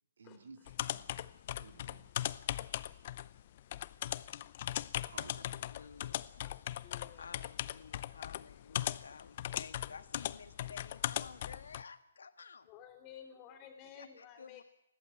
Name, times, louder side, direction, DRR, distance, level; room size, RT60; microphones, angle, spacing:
voice 1, 0.2-2.1 5.0-5.7, right 4 dB, 70° right, 6 dB, 2.7 m, -56 dB
sound 1, 0.7-11.8, left 12 dB, 45° left, 0.7 m, -39 dB
voice 2, 5.1-5.4 5.7-6.8 7.1-12.7 13.8-14.6, left 5 dB, 75° left, 10 dB, 1.6 m, -53 dB
voice 3, 6.8-7.2 12.7-14.6, left 8 dB, 25° left, 2 dB, 3.2 m, -53 dB
20.5 x 15.0 x 9.1 m, 0.90 s
hypercardioid pair, 140°, 0 cm